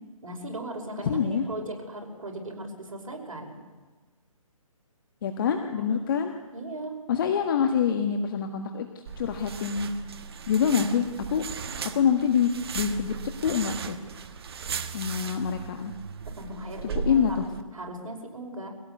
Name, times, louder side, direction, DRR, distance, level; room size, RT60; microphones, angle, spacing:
voice 1, 0.2-3.6 5.7-6.0 6.5-7.0 16.3-17.5 17.7-18.7, right 1 dB, 65° right, 2 dB, 5.4 m, -38 dB
voice 2, 1.0-1.5 5.2-6.3 7.1-8.9 9.2-9.9 10.5-11.4 11.9-13.1 13.4-14.0 14.9-15.9 16.9-17.5, left 7 dB, 40° left, 5 dB, 1.5 m, -25 dB
sound 1, 9.1-17.6, right 5 dB, 45° right, 1.3 m, -37 dB
24.0 x 17.0 x 8.3 m, 1.3 s
figure-of-eight pair, 150°, 18 cm